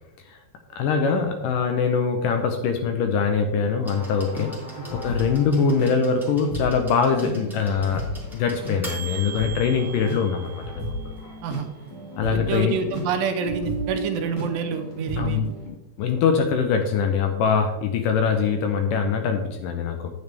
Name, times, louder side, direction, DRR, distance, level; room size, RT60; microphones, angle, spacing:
voice 1, 0.7-4.5 4.9-8.0 8.3-11.1 12.2-12.8 15.2-20.1, left 6 dB, 75° left, 5 dB, 2.1 m, -23 dB
sound 1, 3.8-11.6 12.7-12.8, right 4 dB, ahead, 0.9 m, -41 dB
sound 2, 3.9-5.9 6.5-6.6 7.0-15.7, right 1 dB, 40° left, 0.4 m, -34 dB
voice 2, 12.3-15.4, right 5 dB, 80° right, 7 dB, 2.3 m, -27 dB
9.2 x 8.2 x 3.4 m, 0.97 s
omnidirectional pair, 4.4 m